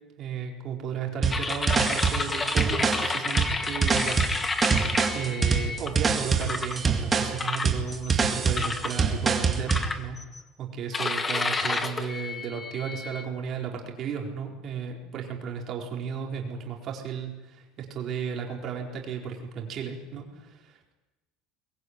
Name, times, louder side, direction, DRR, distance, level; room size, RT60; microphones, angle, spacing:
voice 1, 0.2-4.2 4.5-4.9 5.1-10.2 10.6-20.9, right 7 dB, 35° right, 1 dB, 4.4 m, -34 dB
sound 1, 1.2-9.9, right 5 dB, 15° right, 2.0 m, -25 dB
sound 2, 1.3-5.9 6.4-6.8 7.4-8.1 8.6-9.0 9.7-10.4 10.9-13.3, left 3 dB, 15° left, 1.3 m, -30 dB
23.0 x 21.0 x 9.7 m, 1.1 s
cardioid pair, 175°, 0 cm